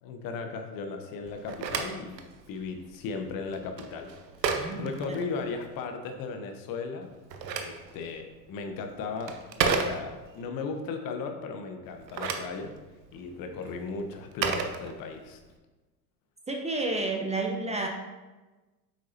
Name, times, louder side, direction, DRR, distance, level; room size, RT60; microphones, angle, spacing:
voice 1, 0.0-4.1 4.5-7.1 7.5-9.4 9.7-12.7 13.1-15.4, left 4 dB, 45° left, 5 dB, 1.0 m, -36 dB
Telephone, 1.3-5.8 7.0-10.4 11.9-15.5, right 5 dB, 80° right, 0.9 m, -34 dB
voice 2, 4.6-5.2 16.5-17.9, right 2 dB, 15° right, 2 dB, 0.8 m, -31 dB
8.4 x 6.2 x 2.8 m, 1.2 s
hypercardioid pair, 80°, 50 cm